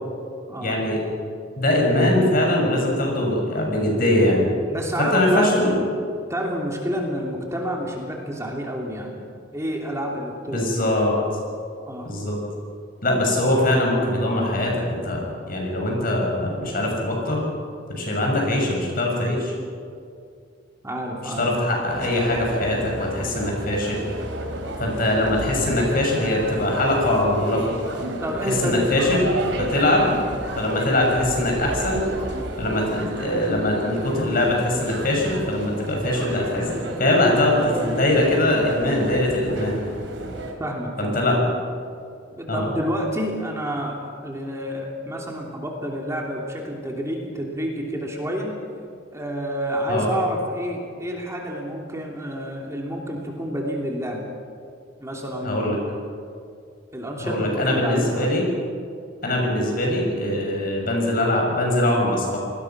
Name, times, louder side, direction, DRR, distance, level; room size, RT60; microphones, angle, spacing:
voice 1, 0.6-1.0 1.6-4.5 5.0-5.8 10.5-11.1 12.0-12.4 13.0-15.2 15.5-17.5 17.9-19.5 21.2-24.0 24.8-27.6 28.5-29.3 29.6-30.2 30.6-32.0 32.6-36.7 37.0-39.8 41.0-41.5 42.5-42.7 49.9-50.1 55.4-55.8 57.2-58.5 59.2-62.4, left 1 dB, 50° left, 0 dB, 6.9 m, -22 dB
voice 2, 4.7-5.6 6.3-9.3 9.5-10.9 11.9-12.1 17.0-17.1 20.8-21.5 28.2-28.8 30.0-30.2 40.6-41.2 42.3-48.5 49.1-54.2 55.0-55.7 56.9-58.3, equal, 15° right, -1 dB, 3.0 m, -29 dB
sound 1, 21.9-40.5, right 1 dB, 75° right, 4.2 m, -32 dB
28.0 x 20.0 x 6.1 m, 2.4 s
head